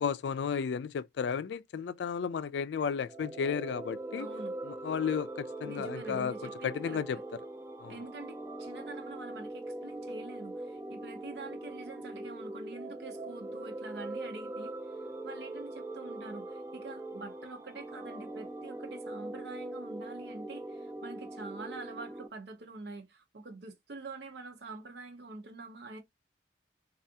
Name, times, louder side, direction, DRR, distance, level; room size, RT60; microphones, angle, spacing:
voice 1, 0.0-4.3 4.6-7.2 7.8-8.0, left 6 dB, 80° left, 0.3 m, -33 dB
sound 1, 3.0-22.3, right 2 dB, 15° right, 0.4 m, -42 dB
voice 2, 4.2-4.6 5.6-7.2 7.9-14.9 15.2-26.0, right 3 dB, 75° right, 0.6 m, -46 dB
3.4 x 2.4 x 2.7 m
head